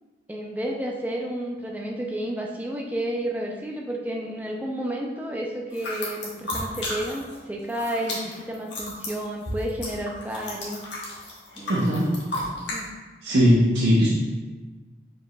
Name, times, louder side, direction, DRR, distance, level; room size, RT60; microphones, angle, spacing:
voice 1, 0.3-10.8 11.6-11.8 12.6-12.9, right 1 dB, 10° right, -1 dB, 0.5 m, -31 dB
sound 1, 5.7-7.4 7.6-12.8, left 1 dB, 90° left, 1.3 m, -33 dB
voice 2, 11.7-12.2 13.2-14.1, equal, 75° right, -6 dB, 0.7 m, -19 dB
4.8 x 4.7 x 2.3 m, 1.3 s
head